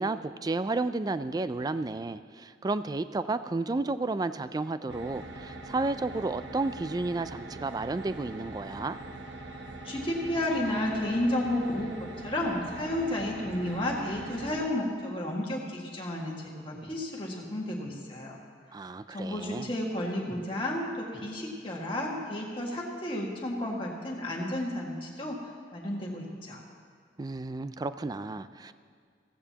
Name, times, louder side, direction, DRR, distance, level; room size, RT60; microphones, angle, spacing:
voice 1, 0.0-9.0 18.7-19.7 27.2-28.7, right 3 dB, 20° right, 13 dB, 0.3 m, -32 dB
sound 1, 4.9-14.7, right 2 dB, 85° right, 0.9 m, -43 dB
voice 2, 9.8-11.9 12.2-18.4 19.1-25.4 25.7-26.6, left 1 dB, 30° left, -2 dB, 1.8 m, -32 dB
15.5 x 15.0 x 2.9 m, 2.1 s
head